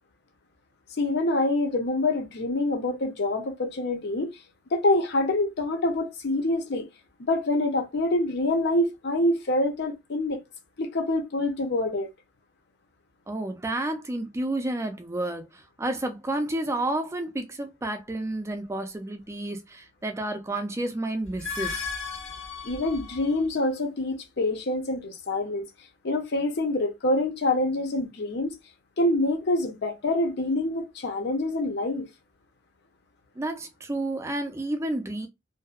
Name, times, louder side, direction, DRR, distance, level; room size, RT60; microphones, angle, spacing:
voice 1, 1.0-4.3 4.7-6.9 7.3-10.4 10.8-12.1 22.6-25.7 26.0-28.5 29.0-32.1, left 2 dB, 55° left, 0.6 m, -26 dB
voice 2, 13.3-21.8 33.4-35.3, right 1 dB, 15° right, 0.4 m, -30 dB
sound 1, 21.2-23.5, left 5 dB, 80° left, 1.2 m, -35 dB
2.6 x 2.1 x 2.3 m
head